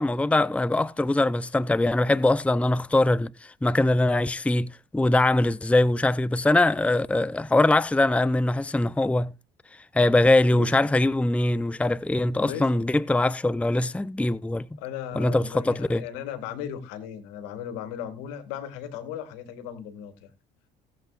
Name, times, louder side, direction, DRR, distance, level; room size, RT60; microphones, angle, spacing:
voice 1, 0.0-9.3 9.9-14.7 15.2-16.0, left 2 dB, 5° left, 0.6 m, -22 dB
voice 2, 10.5-10.9 12.3-12.9 14.8-20.3, left 9 dB, 80° left, 2.1 m, -37 dB
18.5 x 8.1 x 2.5 m
hypercardioid pair, 60°, 21 cm